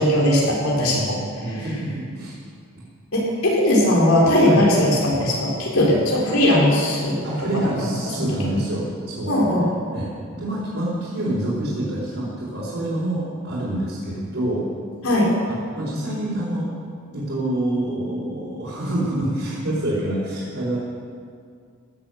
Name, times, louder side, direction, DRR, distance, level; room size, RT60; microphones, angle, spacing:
voice 1, 0.0-1.2 3.1-7.2 8.2-8.3 9.3-9.6 15.0-15.3, left 1 dB, 80° left, -4 dB, 4.4 m, -18 dB
voice 2, 0.8-2.4 2.8-2.9 4.4-4.6 7.2-9.3 9.9-14.6 15.7-16.7 17.1-20.8, right 1 dB, 65° right, -9 dB, 4.4 m, -27 dB
17.0 x 7.9 x 7.8 m, 2.2 s
head